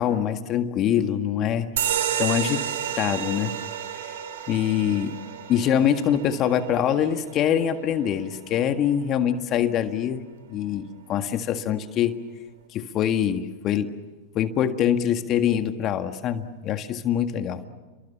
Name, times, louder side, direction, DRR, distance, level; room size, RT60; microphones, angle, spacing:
voice 1, 0.0-1.7 2.2-2.7 3.0-3.6 4.5-5.2 5.5-12.2 12.7-13.9 14.4-17.6, left 9 dB, 40° left, 8 dB, 1.8 m, -24 dB
sound 1, 1.8-8.8, right 9 dB, 70° right, 3.7 m, -31 dB
30.0 x 24.0 x 7.3 m, 1.3 s
hypercardioid pair, 100°, 0 cm